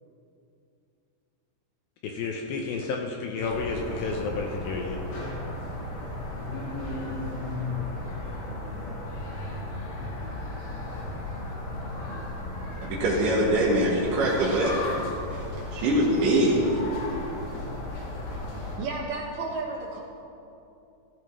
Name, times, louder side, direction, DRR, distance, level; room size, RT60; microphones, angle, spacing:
voice 1, 2.0-5.0, left 4 dB, 75° left, 1 dB, 2.3 m, -31 dB
sound 1, 3.4-18.8, left 2 dB, 55° left, 3.6 m, -35 dB
voice 2, 12.8-14.7 15.3-15.4 15.7-16.8, right 1 dB, 60° right, -5 dB, 2.4 m, -23 dB
voice 3, 18.8-20.0, right 3 dB, 75° right, 0 dB, 2.0 m, -32 dB
15.5 x 15.0 x 3.2 m, 2.7 s
omnidirectional pair, 5.0 m